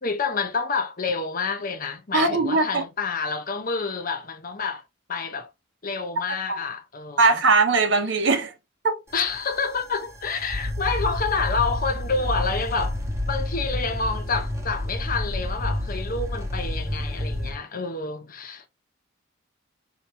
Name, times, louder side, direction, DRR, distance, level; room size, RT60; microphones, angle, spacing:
voice 1, 0.0-4.8 5.1-5.5 5.8-7.4 9.1-13.0 13.3-18.7, left 4 dB, 45° left, 0.9 m, -28 dB
voice 2, 2.1-2.8 6.5-6.6 7.2-8.5 8.8-9.0, right 3 dB, 60° right, 1.0 m, -20 dB
sound 1, 9.1-17.6, left 1 dB, 15° right, 1.2 m, -29 dB
5.0 x 3.0 x 3.3 m
head